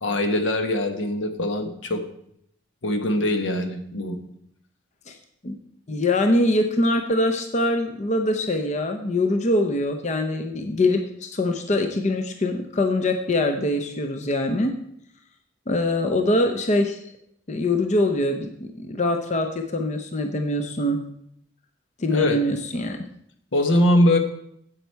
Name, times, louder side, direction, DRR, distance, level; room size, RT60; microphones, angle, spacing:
voice 1, 0.0-2.0 2.8-4.2 22.1-22.4 23.5-24.2, left 1 dB, 75° left, 6 dB, 1.2 m, -22 dB
voice 2, 5.9-14.7 15.7-17.0 17.5-21.0 22.0-23.0, left 1 dB, 40° left, 5 dB, 0.7 m, -23 dB
9.8 x 8.0 x 4.6 m, 0.73 s
head